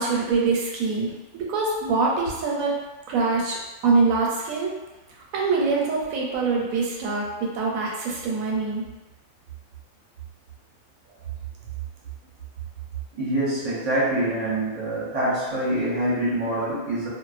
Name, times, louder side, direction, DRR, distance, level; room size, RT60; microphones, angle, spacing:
voice 1, 0.0-2.7 3.1-3.6 3.8-4.7 5.3-8.8, right 4 dB, 90° right, -2 dB, 1.0 m, -24 dB
voice 2, 13.1-17.1, right 1 dB, 35° right, -8 dB, 0.7 m, -25 dB
2.5 x 2.1 x 2.4 m, 1.1 s
omnidirectional pair, 1.4 m